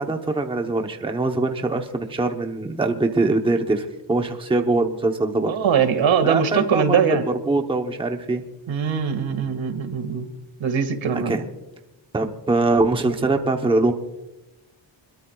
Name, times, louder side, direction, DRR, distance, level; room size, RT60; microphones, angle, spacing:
voice 1, 0.0-5.6 6.2-7.2 7.5-8.4 11.1-11.5 12.1-13.9, right 2 dB, 10° right, 4 dB, 0.8 m, -23 dB
voice 2, 5.5-7.3 8.7-10.3 10.6-11.3, right 7 dB, 80° right, 8 dB, 2.0 m, -21 dB
26.5 x 22.0 x 2.3 m, 1.0 s
wide cardioid pair, 175°, 46 cm